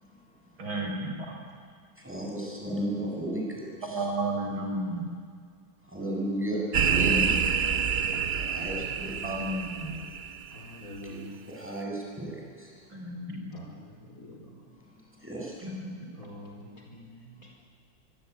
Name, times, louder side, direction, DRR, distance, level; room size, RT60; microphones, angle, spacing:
voice 1, 0.6-1.4 3.8-5.0 7.0-7.4 9.0-9.9 12.9-13.6 15.6-15.9, right 1 dB, 90° right, 2 dB, 5.3 m, -33 dB
voice 2, 2.0-4.1 5.8-7.3 8.3-9.3 11.1-12.8 15.2-15.7, right 1 dB, 5° right, -3 dB, 7.9 m, -34 dB
sound 1, 6.7-10.6, right 6 dB, 50° right, 0.8 m, -27 dB
voice 3, 10.5-11.3 13.5-14.6 16.1-17.5, equal, 45° left, 0 dB, 5.3 m, -46 dB
24.0 x 24.0 x 9.8 m, 2.1 s
omnidirectional pair, 2.2 m